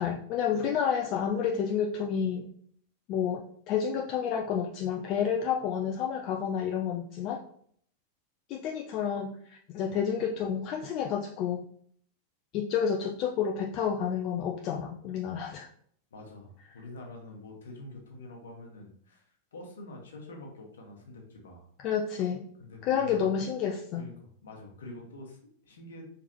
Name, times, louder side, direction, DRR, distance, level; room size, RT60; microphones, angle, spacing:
voice 1, 0.0-2.5 3.1-7.4 8.5-11.6 12.5-15.7 21.8-22.5 22.8-24.0, left 7 dB, 40° left, 3 dB, 0.4 m, -30 dB
voice 2, 16.1-21.7 22.6-23.5 24.0-26.1, left 2 dB, 65° left, 1 dB, 1.2 m, -46 dB
4.6 x 3.5 x 2.9 m, 0.62 s
figure-of-eight pair, 90°, 0 cm